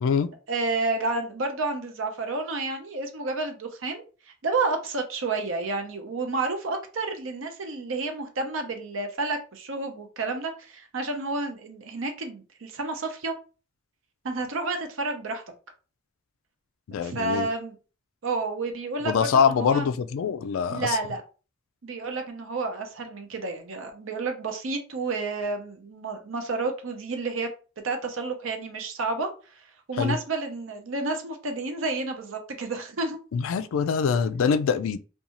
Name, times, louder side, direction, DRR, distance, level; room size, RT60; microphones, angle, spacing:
voice 1, 0.5-4.0 4.4-13.3 14.2-15.4 17.0-17.7 18.2-19.9 20.7-21.2 21.8-27.5 27.8-29.3 29.9-33.2, right 3 dB, 65° right, 0.6 m, -30 dB
voice 2, 16.9-17.5 19.0-21.0 30.0-30.2 33.3-35.0, left 6 dB, 75° left, 0.3 m, -24 dB
2.6 x 2.3 x 2.8 m
head